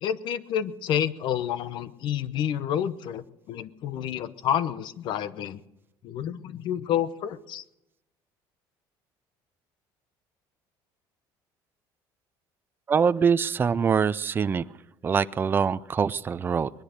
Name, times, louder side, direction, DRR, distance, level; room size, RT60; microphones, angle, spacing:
voice 1, 0.0-5.6 6.0-7.6, left 9 dB, 60° left, 14 dB, 0.9 m, -29 dB
voice 2, 12.9-14.6 15.0-16.7, right 6 dB, 25° right, 14 dB, 0.5 m, -24 dB
21.0 x 10.5 x 6.6 m, 0.92 s
cardioid pair, 135°, 9 cm